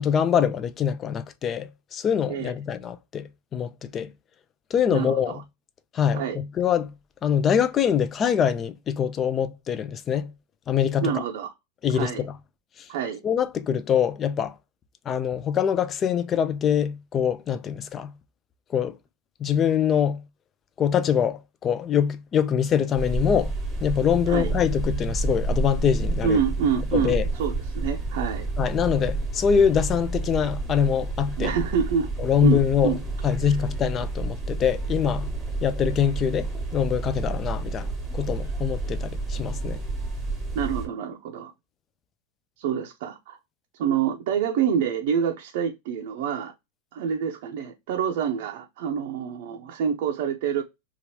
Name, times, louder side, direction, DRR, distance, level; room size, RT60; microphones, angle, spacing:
voice 1, 0.0-4.1 4.7-5.4 5.9-6.9 7.2-10.3 10.7-11.1 11.8-12.4 13.2-14.5 15.1-18.1 18.7-18.9 19.4-20.2 20.8-23.5 23.8-26.4 26.9-27.3 28.6-31.5 32.2-33.0 33.2-35.3 35.6-39.8, left 8 dB, 30° left, 0.4 m, -24 dB
voice 2, 4.9-5.4 6.1-6.4 11.0-11.5 11.9-12.3 12.9-13.2 24.3-24.5 26.2-28.5 31.4-32.1 32.4-33.0 40.5-41.5 42.6-43.4 43.8-46.5 46.9-50.6, right 7 dB, 65° right, 0.5 m, -27 dB
sound 1, 23.0-40.9, right 2 dB, 10° right, 1.0 m, -30 dB
2.8 x 2.4 x 3.0 m
supercardioid pair, 125°, 0 cm